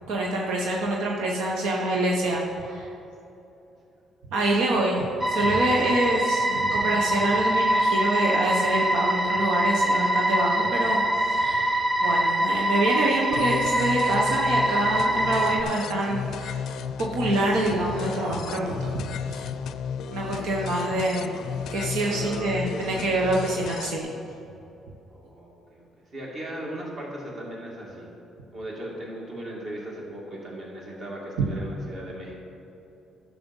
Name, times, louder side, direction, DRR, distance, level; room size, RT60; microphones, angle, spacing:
voice 1, 0.1-2.9 4.3-16.6 17.0-19.4 20.1-21.3 21.7-24.1 31.4-31.5, right 2 dB, 90° right, -1 dB, 1.1 m, -26 dB
sound 1, 5.2-15.6, right 1 dB, 15° right, 0.7 m, -24 dB
sound 2, 13.3-24.0, left 7 dB, 70° left, 0.4 m, -34 dB
voice 2, 22.1-23.0 25.1-28.1 28.5-32.3, right 1 dB, 40° right, -3 dB, 2.5 m, -37 dB
11.0 x 6.8 x 5.5 m, 2.9 s
cardioid pair, 125°, 0 cm